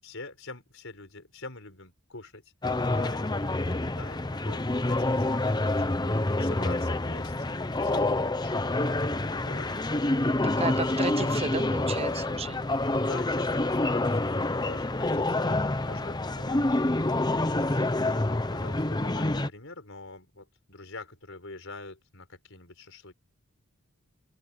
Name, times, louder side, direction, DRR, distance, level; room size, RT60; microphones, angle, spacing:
voice 1, 0.0-9.0 9.3-9.9 13.0-16.6 17.3-23.1, left 3 dB, 60° left, 5.8 m, -45 dB
sound 1, 2.6-19.5, left 2 dB, 20° left, 0.8 m, -27 dB
voice 2, 10.4-12.6, right 3 dB, 30° right, 0.8 m, -33 dB
open air
head